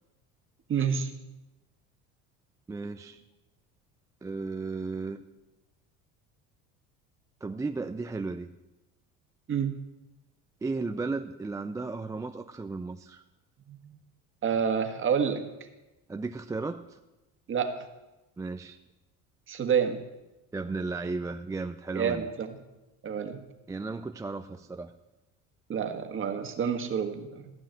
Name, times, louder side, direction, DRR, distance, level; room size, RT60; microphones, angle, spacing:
voice 1, 0.7-1.1 9.5-9.7 13.7-14.0 14.4-15.4 17.5-17.8 19.5-20.0 21.9-22.6 23.0-23.4 25.7-27.4, right 7 dB, 35° right, 6 dB, 1.6 m, -28 dB
voice 2, 2.7-3.2 4.2-5.2 7.4-8.5 10.6-13.2 16.1-17.0 18.4-18.8 20.5-22.3 23.7-24.9, right 3 dB, 10° right, 8 dB, 0.4 m, -34 dB
15.0 x 6.2 x 9.0 m, 1.0 s
cardioid pair, 120°, 35 cm